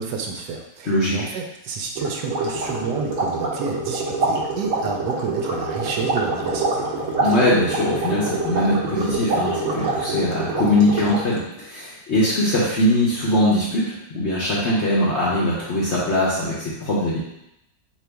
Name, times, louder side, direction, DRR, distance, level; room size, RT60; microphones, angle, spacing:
voice 1, 0.0-6.8, right 5 dB, 75° right, 2 dB, 1.1 m, -30 dB
sound 1, 1.9-11.4, right 3 dB, 55° right, 1.0 m, -25 dB
voice 2, 7.2-17.2, left 1 dB, 55° left, -7 dB, 0.8 m, -21 dB
3.9 x 3.0 x 3.4 m, 0.86 s
omnidirectional pair, 1.9 m